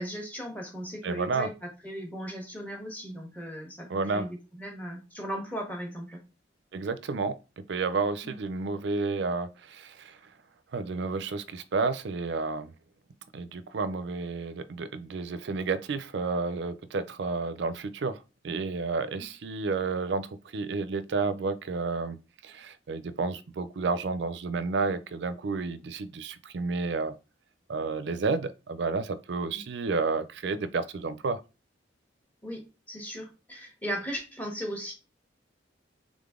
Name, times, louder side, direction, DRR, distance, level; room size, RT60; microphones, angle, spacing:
voice 1, 0.0-1.5 1.8-6.2 8.2-8.3 29.5-29.6 32.4-32.6 32.9-34.9, equal, 10° left, 1.2 m, -37 dB
voice 2, 1.0-1.5 3.9-4.3 6.7-7.4 7.7-10.2 10.7-12.7 13.3-18.2 18.4-22.2 22.4-27.2 27.7-31.4, right 4 dB, 70° right, 0.4 m, -31 dB
3.8 x 3.6 x 3.6 m
head